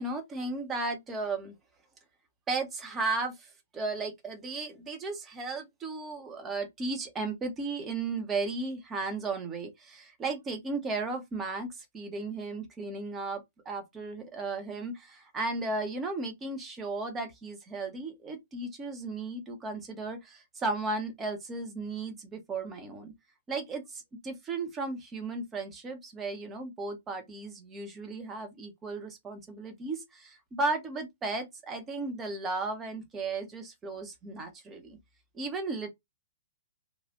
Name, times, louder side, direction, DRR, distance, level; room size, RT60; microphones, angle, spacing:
voice 1, 0.0-1.5 2.5-23.1 23.5-35.0 35.3-35.9, right 3 dB, 20° right, 0.9 m, -35 dB
3.1 x 2.5 x 2.5 m
figure-of-eight pair, 115°, 0 cm